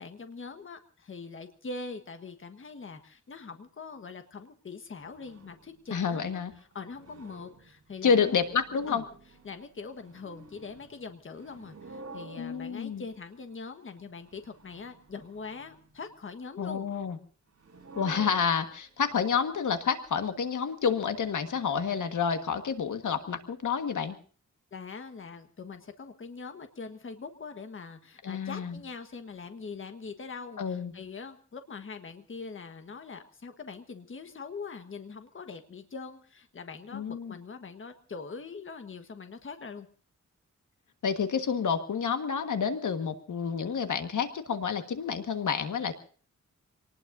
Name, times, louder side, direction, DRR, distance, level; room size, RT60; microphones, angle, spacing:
voice 1, 0.0-6.4 6.7-8.4 8.9-9.0 9.4-16.9 24.7-39.9, left 4 dB, 40° left, 7 dB, 1.4 m, -42 dB
sound 1, 5.0-5.8 6.2-6.3 6.6-13.4 14.0-16.0 17.6-18.9 19.4-19.6 20.1-20.2 21.3-22.0, right 3 dB, 50° right, 7.0 m, -50 dB
voice 2, 5.9-6.5 8.0-9.0 12.4-13.0 16.6-17.2 17.9-24.2 28.2-28.8 30.6-30.9 36.9-37.3 41.0-45.9, left 6 dB, 80° left, 8 dB, 1.6 m, -29 dB
26.5 x 19.0 x 2.7 m, 0.43 s
wide cardioid pair, 150°, 31 cm